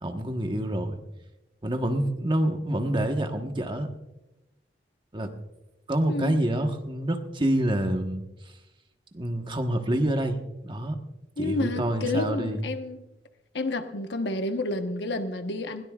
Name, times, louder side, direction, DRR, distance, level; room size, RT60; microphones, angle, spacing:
voice 1, 0.0-1.0 1.6-3.9 5.1-5.3 5.9-8.2 9.1-11.0 11.4-12.6, right 1 dB, 30° right, 5 dB, 1.3 m, -27 dB
voice 2, 11.4-13.0 13.5-15.8, left 2 dB, 75° left, 7 dB, 1.1 m, -30 dB
21.0 x 17.5 x 2.4 m, 0.96 s
head